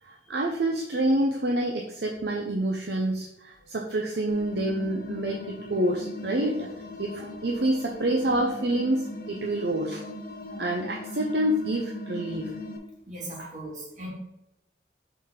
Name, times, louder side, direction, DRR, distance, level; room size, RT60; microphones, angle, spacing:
voice 1, 0.0-6.7 7.0-10.0 10.6-12.5 13.4-13.5, right 1 dB, 60° right, 0 dB, 0.7 m, -27 dB
sound 1, 4.3-12.8, left 2 dB, 50° left, 1.0 m, -39 dB
voice 2, 13.1-14.1, right 1 dB, 40° right, -4 dB, 2.4 m, -38 dB
5.5 x 4.2 x 5.1 m, 0.88 s
head